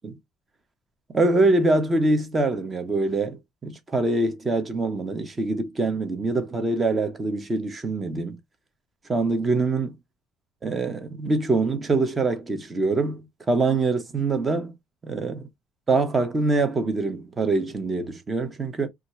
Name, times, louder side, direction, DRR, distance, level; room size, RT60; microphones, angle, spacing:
voice 1, 1.1-8.4 9.1-10.0 10.6-14.7 15.0-15.5 15.9-18.9, right 3 dB, 15° right, 0.7 m, -24 dB
4.2 x 2.4 x 2.9 m
cardioid pair, 175°, 0 cm